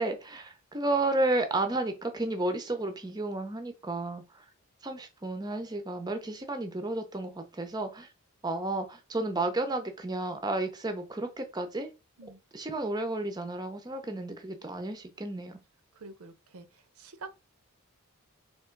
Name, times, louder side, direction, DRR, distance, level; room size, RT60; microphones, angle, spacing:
voice 1, 0.0-4.4 4.8-8.1 8.4-11.9 12.5-15.6, right 2 dB, 20° right, 0.6 m, -32 dB
voice 2, 15.9-17.3, right 3 dB, 80° right, 0.6 m, -47 dB
3.5 x 2.9 x 4.4 m
head